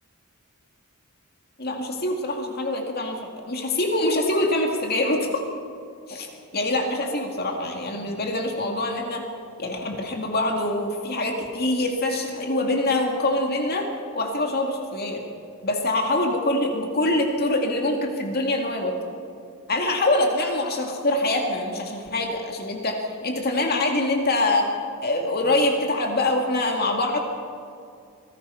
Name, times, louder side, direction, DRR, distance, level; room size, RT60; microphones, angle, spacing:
voice 1, 1.6-5.4 6.1-6.3 6.5-9.2 9.6-13.9 14.1-15.2 15.6-19.1 19.7-24.7 25.0-27.2, left 2 dB, 45° left, 2 dB, 2.3 m, -24 dB
26.0 x 19.0 x 5.7 m, 2.4 s
head